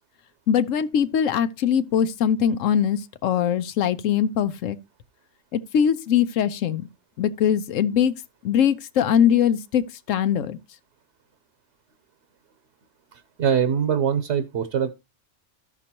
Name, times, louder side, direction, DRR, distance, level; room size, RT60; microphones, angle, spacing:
voice 1, 0.5-4.8 5.5-6.9 7.2-8.1 8.4-10.6, left 8 dB, 85° left, 1.0 m, -22 dB
voice 2, 13.1-14.9, right 8 dB, 65° right, 1.0 m, -23 dB
14.0 x 6.0 x 2.8 m
omnidirectional pair, 1.3 m